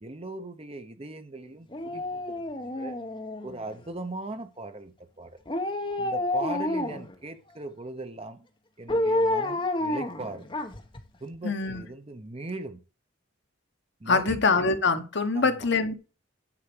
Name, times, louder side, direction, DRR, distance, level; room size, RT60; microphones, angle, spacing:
voice 1, 0.0-3.0 3.4-5.4 6.0-8.5 8.8-10.5 11.2-12.8 14.0-14.4 15.3-15.7, right 2 dB, 30° right, 0.9 m, -39 dB
Dog, 1.7-3.8 5.5-7.2 8.9-11.0 11.3-11.4, left 1 dB, 25° left, 1.1 m, -29 dB
voice 2, 11.4-11.8 14.1-15.9, left 4 dB, 60° left, 1.2 m, -24 dB
9.9 x 4.5 x 6.1 m
head